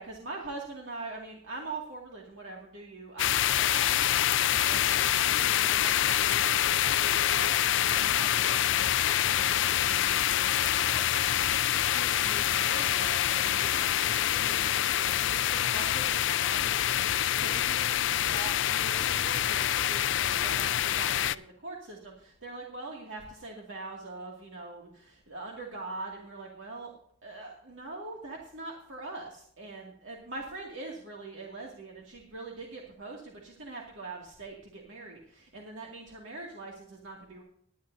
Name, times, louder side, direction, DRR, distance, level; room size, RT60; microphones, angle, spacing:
voice 1, 0.0-26.9 27.2-37.4, right 3 dB, 65° right, -2 dB, 2.2 m, -43 dB
sound 1, 3.2-21.3, left 11 dB, 60° left, 0.4 m, -26 dB
20.0 x 10.5 x 2.7 m, 0.64 s
head